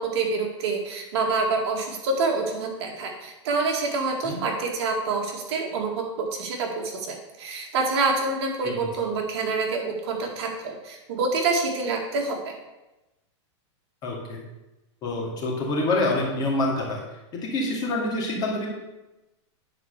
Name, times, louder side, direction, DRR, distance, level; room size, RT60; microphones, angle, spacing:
voice 1, 0.0-12.5, right 3 dB, 60° right, 1 dB, 2.2 m, -27 dB
voice 2, 14.0-14.4 15.0-17.0 17.3-18.7, left 2 dB, 25° left, -2 dB, 2.4 m, -26 dB
9.9 x 4.7 x 6.6 m, 1.0 s
supercardioid pair, 160°, 16 cm